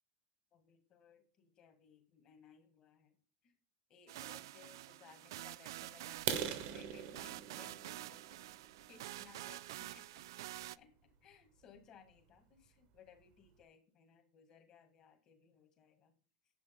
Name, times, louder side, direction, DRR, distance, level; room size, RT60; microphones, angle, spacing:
voice 1, 0.5-3.2 3.4-3.5 3.9-8.4 8.9-10.1 10.4-10.5 10.8-16.1, left 6 dB, 30° left, 5 dB, 2.1 m, -62 dB
sound 1, 4.1-10.8, right 15 dB, 85° right, 0.3 m, -48 dB
sound 2, 6.2-9.9 10.5-10.6 11.1-11.2 11.6-11.8 12.1-12.2 12.7-12.8 13.0-13.5, right 9 dB, 50° right, 1.2 m, -42 dB
9.5 x 7.6 x 3.9 m, 0.41 s
supercardioid pair, 165°, 2 cm